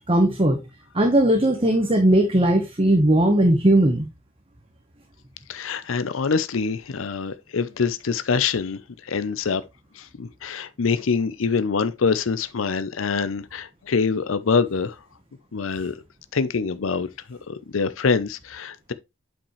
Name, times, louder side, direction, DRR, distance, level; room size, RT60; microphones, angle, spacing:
voice 1, 0.1-0.6 0.9-4.1, right 1 dB, 30° right, 1.1 m, -18 dB
voice 2, 5.5-9.6 10.0-15.0 15.5-16.0 16.3-18.9, left 5 dB, 80° left, 0.6 m, -25 dB
8.7 x 5.2 x 3.1 m
head